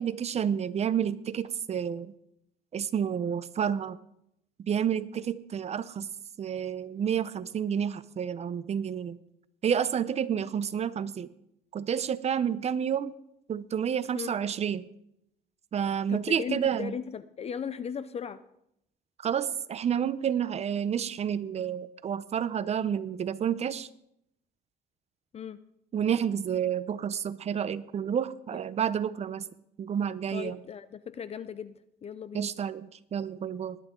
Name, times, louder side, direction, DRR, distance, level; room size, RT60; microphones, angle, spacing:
voice 1, 0.0-2.1 2.7-4.0 4.6-6.1 6.4-9.2 9.6-11.3 11.7-13.1 13.5-14.9 15.7-16.9 19.2-23.9 25.9-29.5 29.8-30.6 32.3-33.8, right 8 dB, 40° right, 15 dB, 0.7 m, -30 dB
voice 2, 16.1-18.4 25.3-25.6 28.5-28.6 30.3-31.7 32.0-32.5, left 7 dB, 40° left, 14 dB, 0.6 m, -37 dB
19.0 x 11.5 x 3.8 m, 0.76 s
cardioid pair, 110°, 17 cm